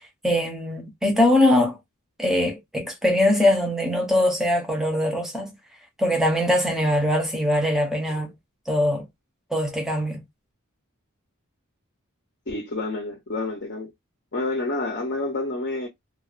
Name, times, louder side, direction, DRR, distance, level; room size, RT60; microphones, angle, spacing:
voice 1, 0.2-1.8 2.2-5.5 6.0-8.3 8.7-9.1 9.5-10.2, left 1 dB, ahead, 0.6 m, -22 dB
voice 2, 12.5-13.9 14.3-15.9, left 2 dB, 50° left, 0.7 m, -28 dB
2.3 x 2.2 x 2.4 m
head